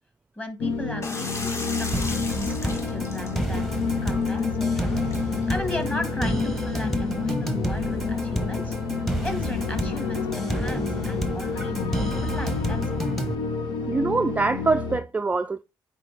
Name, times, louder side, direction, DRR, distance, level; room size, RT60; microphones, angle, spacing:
voice 1, 0.4-3.7 4.0-4.9 5.3-12.9, left 1 dB, 20° left, 1.8 m, -36 dB
sound 1, 0.6-15.0, left 4 dB, 85° left, 1.2 m, -29 dB
sound 2, 1.0-6.5, left 2 dB, 35° left, 1.3 m, -38 dB
sound 3, 1.9-13.3, right 1 dB, ahead, 1.0 m, -31 dB
voice 2, 13.9-15.6, right 3 dB, 20° right, 0.3 m, -24 dB
9.3 x 4.2 x 3.4 m
cardioid pair, 90°, 8 cm